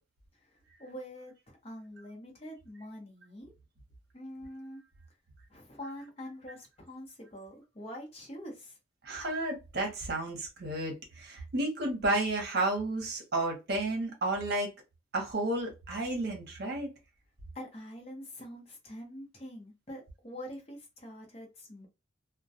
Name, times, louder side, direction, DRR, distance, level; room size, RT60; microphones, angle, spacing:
voice 1, 0.8-1.3 1.6-3.5 4.1-4.8 5.5-8.8 17.5-21.9, equal, 30° left, 0.8 m, -45 dB
voice 2, 9.0-14.7 15.1-16.9, right 2 dB, 55° right, 0.8 m, -32 dB
2.2 x 2.2 x 2.6 m
head